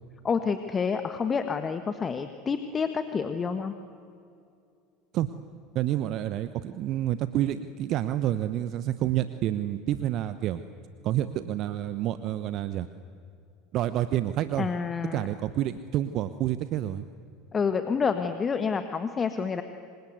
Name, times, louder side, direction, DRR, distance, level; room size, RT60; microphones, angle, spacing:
voice 1, 0.2-3.7 14.6-15.3 17.5-19.6, left 5 dB, 25° left, 8 dB, 1.6 m, -28 dB
voice 2, 5.7-10.6 11.0-12.9 13.7-14.7 15.1-17.0, right 12 dB, 50° right, 12 dB, 1.0 m, -28 dB
27.0 x 25.5 x 8.1 m, 2.5 s
hypercardioid pair, 75°, 0 cm